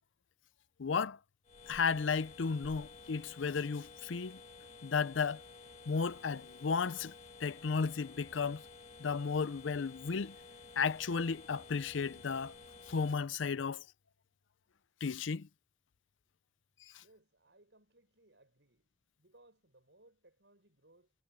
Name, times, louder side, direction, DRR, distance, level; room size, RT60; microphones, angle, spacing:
voice 1, 0.8-1.2 1.7-4.4 4.8-5.4 5.9-7.1 7.4-8.6 9.0-10.3 10.8-12.5 12.9-13.8 15.0-15.5, left 5 dB, 90° left, 0.6 m, -34 dB
sound 1, 1.4-13.2, left 4 dB, 35° left, 2.2 m, -53 dB
voice 2, 17.0-18.9 19.2-21.1, right 2 dB, 70° right, 6.5 m, -65 dB
head